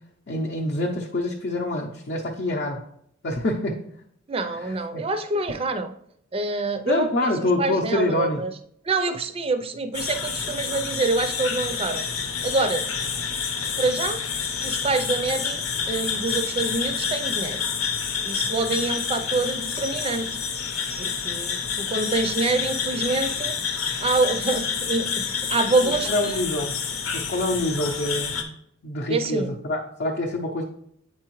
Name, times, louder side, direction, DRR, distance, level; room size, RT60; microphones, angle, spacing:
voice 1, 0.3-2.8 3.2-3.8 4.4-5.0 6.6-8.4 25.8-26.8 27.1-30.6, left 1 dB, 50° left, -1 dB, 0.7 m, -26 dB
voice 2, 4.3-5.9 6.3-7.1 7.6-8.5 8.9-12.0 12.4-12.8 13.8-14.2 14.6-17.6 18.2-20.3 21.0-23.5 24.0-26.4 29.1-29.5, right 3 dB, 25° right, 8 dB, 0.5 m, -26 dB
sound 1, 9.9-28.4, left 6 dB, 85° left, 0.9 m, -28 dB
8.2 x 4.8 x 3.0 m, 0.70 s
head